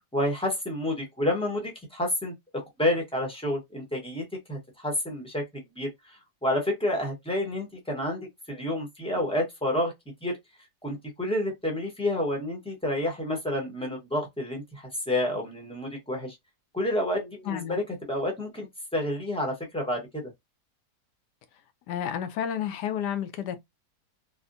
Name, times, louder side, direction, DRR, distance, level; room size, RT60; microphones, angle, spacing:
voice 1, 0.1-4.2 4.5-5.9 6.4-9.9 10.2-10.4 10.8-16.4 16.7-17.8 18.1-18.7 18.9-20.2, left 1 dB, 5° left, 0.6 m, -29 dB
voice 2, 17.5-17.8 21.9-23.6, left 9 dB, 85° left, 1.2 m, -31 dB
3.5 x 2.1 x 2.4 m
omnidirectional pair, 1.8 m